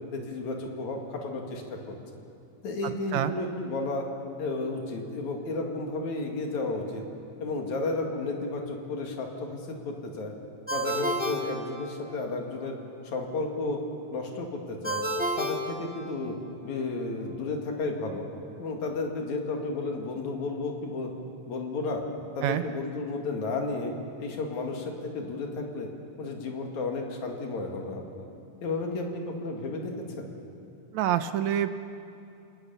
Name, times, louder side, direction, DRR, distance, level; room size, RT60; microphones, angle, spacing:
voice 1, 0.1-2.0 2.6-4.1 4.4-7.0 7.4-10.3 10.7-12.8 13.0-13.8 14.1-15.0 15.4-16.4 16.6-18.3 18.6-21.1 21.5-22.0 22.4-23.9 24.2-25.9 26.2-28.3 28.6-30.3, left 3 dB, 65° left, 2 dB, 3.5 m, -33 dB
Ringtone, 10.7-12.3 14.8-16.5, right 1 dB, 5° right, 1.3 m, -31 dB
voice 2, 30.9-31.7, right 11 dB, 75° right, 10 dB, 1.9 m, -26 dB
29.0 x 18.5 x 7.1 m, 2.7 s
omnidirectional pair, 3.7 m